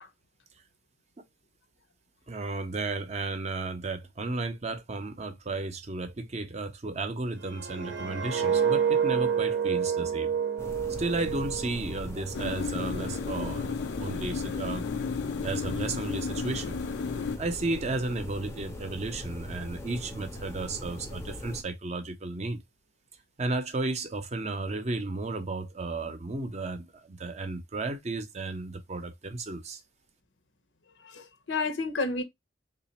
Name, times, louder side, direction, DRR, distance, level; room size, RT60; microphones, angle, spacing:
voice 1, 2.3-10.3 11.0-14.9 15.4-16.8 17.4-22.6 23.4-29.8, right 2 dB, 35° right, 0.6 m, -33 dB
sound 1, 7.4-12.5 12.8-13.1, right 7 dB, 75° right, 0.6 m, -28 dB
sound 2, 10.6-21.6, left 1 dB, 15° left, 0.5 m, -40 dB
sound 3, 12.3-17.4, left 5 dB, 70° left, 0.4 m, -33 dB
voice 2, 31.0-32.2, left 3 dB, 85° left, 0.8 m, -31 dB
3.2 x 2.4 x 4.0 m
head